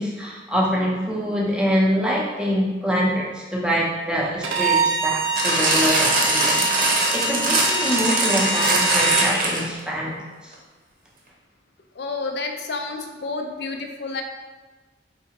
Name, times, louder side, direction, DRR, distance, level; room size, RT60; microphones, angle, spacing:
voice 1, 0.0-10.2 10.4-10.5, equal, 5° right, -4 dB, 0.6 m, -25 dB
Bowed string instrument, 4.4-9.3, right 3 dB, 85° right, 0.6 m, -25 dB
sound 1, 5.4-9.8 10.5-10.6, right 2 dB, 45° right, 0.7 m, -21 dB
voice 2, 12.0-14.2, left 3 dB, 55° left, 4 dB, 0.4 m, -30 dB
4.7 x 3.2 x 2.9 m, 1.3 s
head